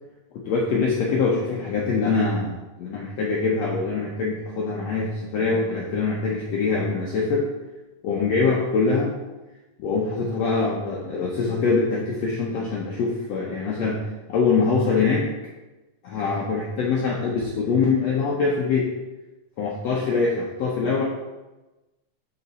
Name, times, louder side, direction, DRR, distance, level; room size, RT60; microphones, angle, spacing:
voice 1, 0.3-7.4 8.0-9.1 9.8-14.0 14.3-15.2 16.0-18.9 19.6-21.0, left 4 dB, 75° left, -3 dB, 1.6 m, -23 dB
10.5 x 3.9 x 4.0 m, 1.1 s
omnidirectional pair, 3.9 m